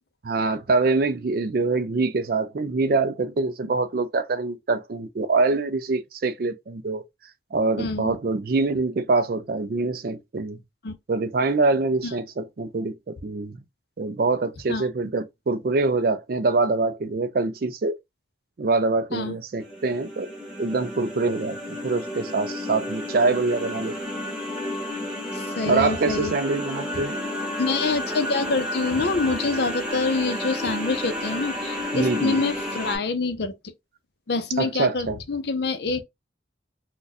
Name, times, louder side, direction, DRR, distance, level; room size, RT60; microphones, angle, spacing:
voice 1, 0.2-7.0 7.5-10.6 11.1-13.6 14.0-18.0 18.6-20.3 20.6-24.0 25.6-27.2 31.9-32.4 34.6-35.2, right 3 dB, 50° right, 0.4 m, -24 dB
voice 2, 7.8-8.1 10.8-11.0 12.0-12.1 14.7-14.9 19.1-19.4 25.3-26.4 27.6-33.5 34.3-36.0, left 3 dB, 60° left, 0.6 m, -26 dB
sound 1, 19.6-33.0, left 1 dB, 5° right, 1.0 m, -31 dB
2.5 x 2.2 x 4.0 m
head